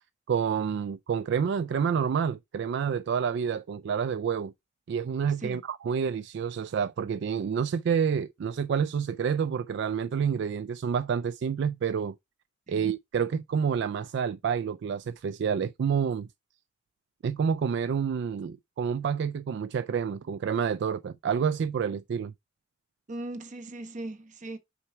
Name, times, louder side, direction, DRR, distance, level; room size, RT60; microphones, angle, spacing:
voice 1, 0.3-4.5 4.9-12.2 12.7-16.3 17.2-22.3, right 7 dB, 65° right, 0.3 m, -28 dB
voice 2, 23.1-24.6, right 2 dB, 40° right, 1.0 m, -38 dB
5.9 x 4.5 x 4.5 m
head